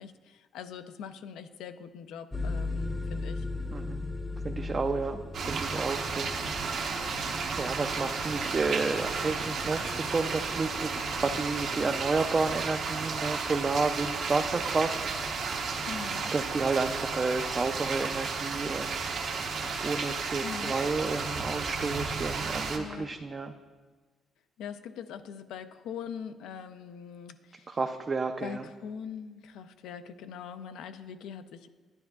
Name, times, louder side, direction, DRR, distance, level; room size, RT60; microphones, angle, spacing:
voice 1, 0.0-3.5 15.9-16.3 20.4-20.7 22.7-23.2 24.6-27.8 28.4-31.7, left 7 dB, 85° left, 10 dB, 0.4 m, -42 dB
sound 1, 2.3-20.9, left 2 dB, 5° left, 0.6 m, -41 dB
voice 2, 3.7-4.0 4.4-6.4 7.6-15.0 16.3-19.0 19.8-23.5 27.7-28.6, right 3 dB, 35° right, 5 dB, 0.4 m, -31 dB
sound 2, 5.3-22.8, right 4 dB, 65° right, 0.9 m, -33 dB
9.8 x 9.8 x 2.3 m, 1.4 s
cardioid pair, 90°, 0 cm